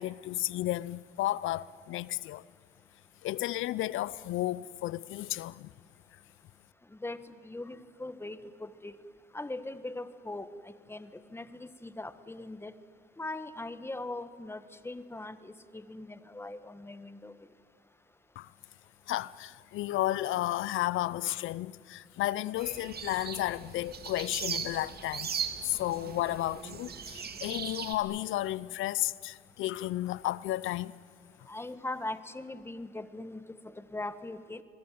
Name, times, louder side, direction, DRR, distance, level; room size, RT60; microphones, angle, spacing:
voice 1, 0.0-2.4 3.2-5.7 18.4-18.5 19.1-31.0, left 15 dB, 80° left, 0.6 m, -33 dB
voice 2, 6.9-9.0 9.3-12.7 13.2-17.3 31.5-34.6, left 2 dB, 10° left, 1.5 m, -41 dB
sound 1, 22.6-27.9, right 7 dB, 50° right, 2.3 m, -39 dB
26.0 x 21.5 x 9.3 m
cardioid pair, 90°, 20 cm